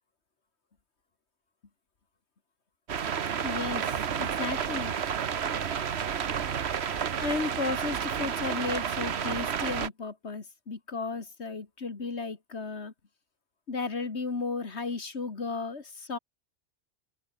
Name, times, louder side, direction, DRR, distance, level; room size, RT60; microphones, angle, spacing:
sound 1, 2.9-9.9, right 8 dB, 65° right, 1.3 m, -31 dB
voice 1, 3.4-4.9 7.2-12.9 13.7-16.2, left 4 dB, 65° left, 2.4 m, -34 dB
open air
omnidirectional pair, 1.2 m